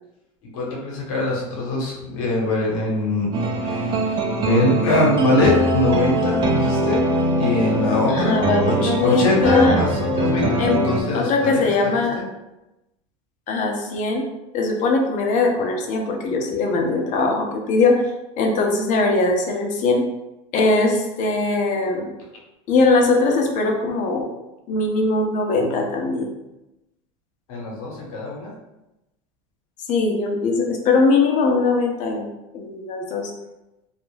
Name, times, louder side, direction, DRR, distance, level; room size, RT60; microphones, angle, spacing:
voice 1, 0.5-3.3 3.6-7.0 7.4-11.7 12.2-12.3 27.5-28.5, left 2 dB, 75° left, -3 dB, 1.0 m, -22 dB
sound 1, 3.3-11.0, right 1 dB, 30° right, 0.5 m, -22 dB
voice 2, 8.1-9.8 10.6-12.2 13.5-14.2 14.5-18.0 18.4-20.0 20.5-22.1 22.7-24.3 24.7-26.3 29.9-32.3 32.5-33.3, left 3 dB, 45° left, 1 dB, 0.6 m, -20 dB
2.4 x 2.0 x 3.1 m, 0.96 s
supercardioid pair, 105°, 17 cm